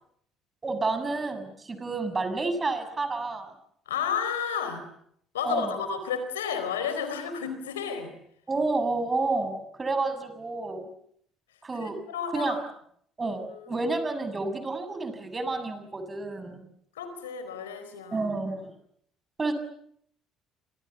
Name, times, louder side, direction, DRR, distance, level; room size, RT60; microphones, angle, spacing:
voice 1, 0.6-3.5 5.4-5.8 8.5-10.9 11.6-12.0 12.3-12.6 13.2-16.7 18.1-18.7 19.4-19.5, right 3 dB, 30° right, 9 dB, 7.0 m, -30 dB
voice 2, 3.9-4.9 5.3-8.1 11.7-12.6 13.2-13.9 16.9-18.3, left 7 dB, 85° left, 10 dB, 4.3 m, -32 dB
29.5 x 26.5 x 7.1 m, 0.70 s
hypercardioid pair, 55°, 0 cm